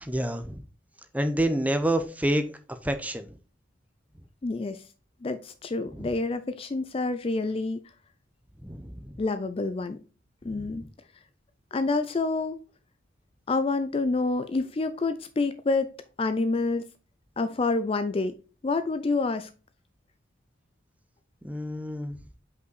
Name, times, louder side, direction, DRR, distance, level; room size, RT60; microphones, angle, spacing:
voice 1, 0.0-0.6 1.1-2.4 2.8-3.3 5.9-6.1 8.6-9.2 10.5-10.9 21.4-22.2, right 1 dB, 10° right, 0.6 m, -28 dB
voice 2, 4.4-4.8 5.2-7.8 9.2-10.0 10.5-10.9 11.7-12.6 13.5-15.9 16.2-16.8 17.4-18.4 18.6-19.5, left 3 dB, 30° left, 0.3 m, -27 dB
5.5 x 5.3 x 4.0 m
head